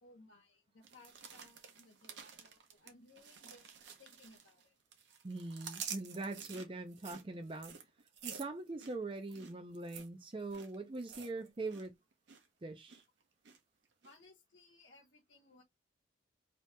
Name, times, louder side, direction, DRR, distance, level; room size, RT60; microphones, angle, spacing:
voice 1, 0.0-3.7 4.0-4.7 11.6-11.7 14.0-15.6, left 2 dB, 75° left, 1.0 m, -62 dB
sound 1, 0.8-4.6 4.9-11.9 12.1-12.5 12.9-13.6 14.0-14.1, right 7 dB, 65° right, 0.8 m, -50 dB
voice 2, 5.2-7.7 8.2-11.9 12.6-13.0, right 2 dB, 25° right, 0.4 m, -42 dB
2.8 x 2.8 x 3.2 m
head